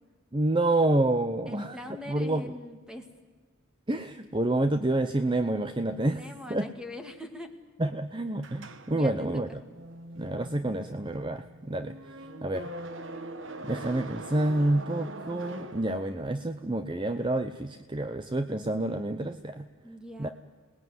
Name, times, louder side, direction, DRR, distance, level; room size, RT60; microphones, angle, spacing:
voice 1, 0.3-1.8 2.1-2.5 3.9-6.2 6.5-6.7 7.8-9.6 10.2-12.7 13.6-19.7 20.2-20.3, right 2 dB, 25° right, 10 dB, 0.7 m, -28 dB
voice 2, 1.5-3.1 6.1-7.5 8.9-9.6 19.8-20.3, left 1 dB, 5° right, 6 dB, 2.1 m, -42 dB
sound 1, 8.4-16.5, right 1 dB, 65° right, 1.5 m, -43 dB
28.0 x 19.5 x 9.5 m, 1.5 s
head